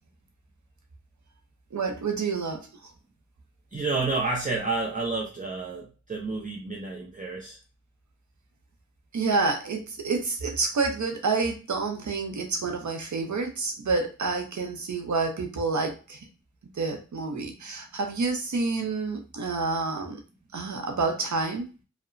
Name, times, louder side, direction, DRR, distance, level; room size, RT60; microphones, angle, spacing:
voice 1, 1.7-2.9 9.1-16.3 16.7-20.2 20.5-21.7, right 4 dB, 75° right, 3 dB, 0.7 m, -28 dB
voice 2, 3.7-7.6, right 3 dB, 25° right, -2 dB, 0.6 m, -30 dB
2.8 x 2.1 x 2.5 m, 0.32 s
cardioid pair, 45°, 30 cm